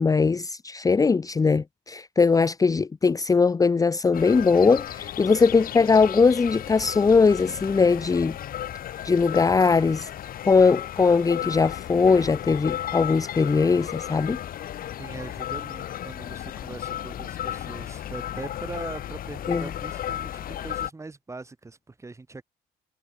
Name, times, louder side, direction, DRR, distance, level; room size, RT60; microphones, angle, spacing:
voice 1, 0.0-8.4 9.0-10.1 10.5-14.4 19.5-19.7, left 4 dB, 20° left, 0.8 m, -20 dB
sound 1, 4.1-20.9, left 11 dB, 60° left, 2.7 m, -34 dB
voice 2, 15.0-22.4, right 3 dB, 15° right, 2.9 m, -41 dB
cardioid pair, 110°, 17 cm